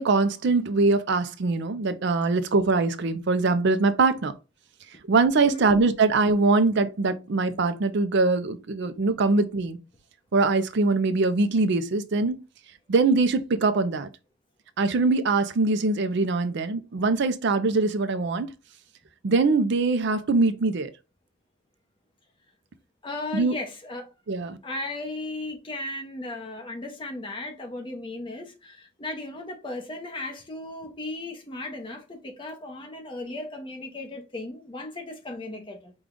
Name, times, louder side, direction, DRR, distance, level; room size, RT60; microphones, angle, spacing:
voice 1, 0.0-4.3 5.1-9.8 10.3-12.4 12.9-14.1 14.8-18.5 19.2-20.9 23.3-23.5 24.3-24.6, right 3 dB, 55° right, 0.5 m, -22 dB
voice 2, 5.4-5.7 23.0-24.1 24.6-35.9, left 2 dB, 25° left, 0.9 m, -36 dB
5.0 x 2.3 x 3.7 m
head